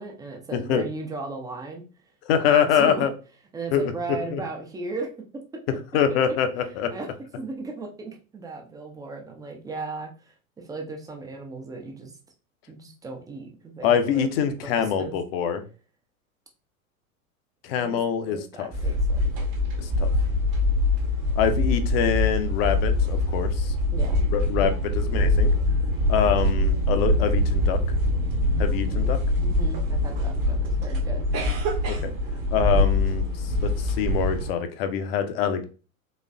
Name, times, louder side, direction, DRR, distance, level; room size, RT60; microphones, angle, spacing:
voice 1, 0.0-1.8 2.4-3.1 3.5-5.1 6.9-7.1 7.4-12.1 12.7-14.3 14.7-15.2 17.8-18.0 18.3-19.2 23.9-24.3 29.0-29.1 29.4-31.3, right 3 dB, 10° right, 2 dB, 0.5 m, -36 dB
voice 2, 0.5-0.8 2.3-3.1 3.7-3.9 4.3-4.4 5.9-6.9 13.8-15.6 17.6-18.7 19.8-20.1 21.4-23.7 24.3-25.5 26.1-27.8 28.6-29.2 31.9-32.1 32.5-35.6, left 8 dB, 45° left, 9 dB, 0.6 m, -25 dB
sound 1, 18.7-34.5, left 1 dB, 40° right, 1.0 m, -23 dB
4.1 x 3.0 x 2.3 m, 0.36 s
figure-of-eight pair, 85°, 42 cm